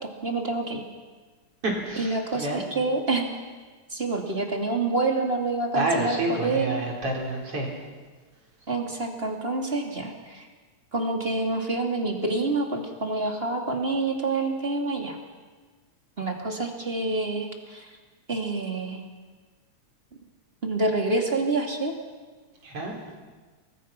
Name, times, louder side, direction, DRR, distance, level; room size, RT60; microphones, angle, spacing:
voice 1, 0.0-0.8 2.0-3.4 3.9-6.8 8.7-10.5 10.9-15.2 16.2-17.9 18.3-19.0 20.6-21.9, right 2 dB, 20° right, 2 dB, 2.6 m, -27 dB
voice 2, 1.6-2.6 5.8-7.7 22.6-22.9, right 2 dB, 50° right, -1 dB, 5.1 m, -28 dB
30.0 x 22.0 x 6.0 m, 1.4 s
omnidirectional pair, 3.4 m